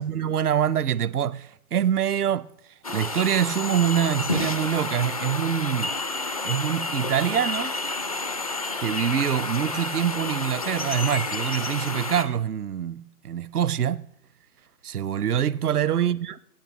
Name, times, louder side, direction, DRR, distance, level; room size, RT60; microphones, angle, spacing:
voice 1, 0.0-2.5 2.9-5.9 6.4-7.8 8.8-14.1 14.8-16.4, right 9 dB, 75° right, 0.6 m, -25 dB
sound 1, 2.8-12.2, left 3 dB, 25° left, 0.5 m, -30 dB
24.0 x 8.9 x 3.0 m
figure-of-eight pair, 135°, 46 cm